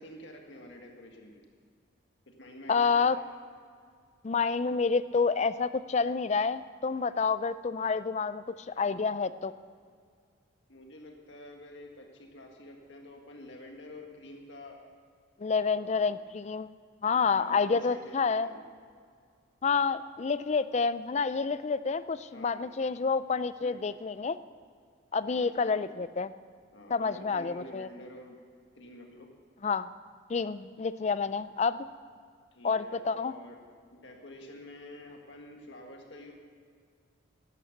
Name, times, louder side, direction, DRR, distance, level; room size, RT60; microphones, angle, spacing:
voice 1, 0.0-1.4 2.3-3.1 8.8-9.1 10.7-14.8 15.7-16.1 17.2-18.6 22.3-22.6 23.6-23.9 25.3-26.0 26.7-28.4 28.8-29.3 32.5-33.6 33.9-36.3, left 1 dB, 60° left, 2 dB, 1.7 m, -48 dB
voice 2, 2.7-3.2 4.2-9.5 15.4-16.7 17.0-18.5 19.6-24.4 25.1-26.3 26.9-27.9 29.6-29.9 30.3-31.9 32.6-33.3, left 5 dB, 35° left, 15 dB, 0.4 m, -28 dB
12.0 x 11.0 x 6.6 m, 2.1 s
head